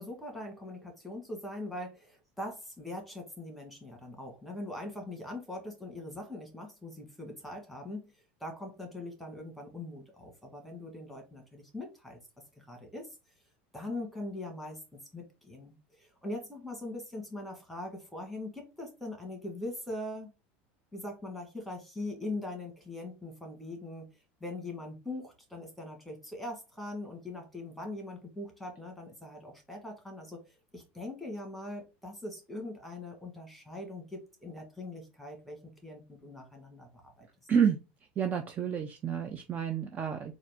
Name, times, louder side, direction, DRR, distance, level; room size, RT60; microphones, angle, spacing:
voice 1, 0.0-8.0 8.4-12.2 12.6-13.2 13.7-20.3 20.9-24.1 24.4-37.3, left 1 dB, ahead, 3 dB, 1.4 m, -41 dB
voice 2, 37.5-37.8 38.2-40.3, right 7 dB, 30° right, 6 dB, 0.5 m, -29 dB
4.0 x 2.5 x 3.5 m, 0.27 s
supercardioid pair, 130°, 6 cm